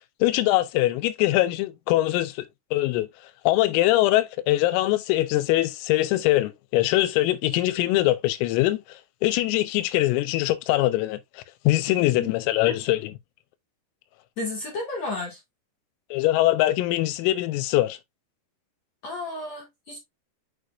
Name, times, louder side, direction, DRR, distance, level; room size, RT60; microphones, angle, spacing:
voice 1, 0.2-2.5 2.7-3.1 3.5-8.8 9.2-11.2 11.7-13.1 16.1-18.0, left 16 dB, 90° left, 3.3 m, -22 dB
voice 2, 14.4-15.4 19.0-20.0, left 2 dB, 60° left, 1.7 m, -32 dB
6.7 x 6.5 x 2.5 m
omnidirectional pair, 6.0 m